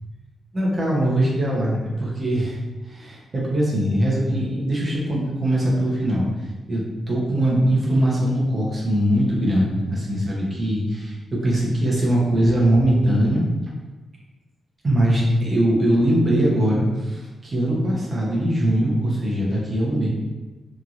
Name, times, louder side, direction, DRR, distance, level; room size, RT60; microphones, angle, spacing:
voice 1, 0.5-2.6 2.8-6.3 6.7-13.4 14.8-20.1, right 1 dB, 25° right, -4 dB, 0.7 m, -21 dB
3.0 x 2.6 x 2.4 m, 1.2 s
wide cardioid pair, 150°, 0 cm